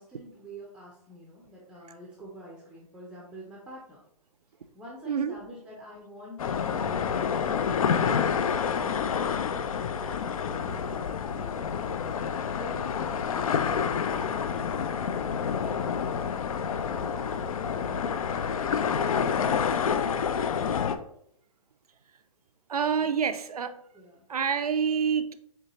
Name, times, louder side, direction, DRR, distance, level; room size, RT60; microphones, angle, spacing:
voice 1, 0.0-4.0 4.7-9.4 10.0-12.0 12.6-13.8 14.4-18.1 23.0-23.2 23.9-24.2, equal, 5° right, 0.4 m, -47 dB
voice 2, 5.1-5.4 22.7-23.8 24.3-25.3, right 7 dB, 85° right, 0.5 m, -27 dB
sound 1, 6.4-21.0, left 7 dB, 70° left, 0.4 m, -28 dB
4.5 x 3.3 x 2.8 m
hypercardioid pair, 135°, 19 cm